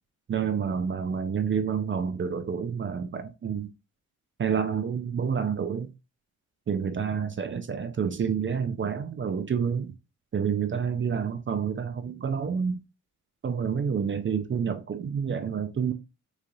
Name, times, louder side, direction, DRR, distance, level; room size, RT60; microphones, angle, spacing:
voice 1, 0.3-3.7 4.4-5.9 6.7-9.9 10.3-12.8 13.4-15.9, right 7 dB, 40° right, 0.5 m, -28 dB
3.9 x 3.2 x 2.3 m
cardioid pair, 100°, 32 cm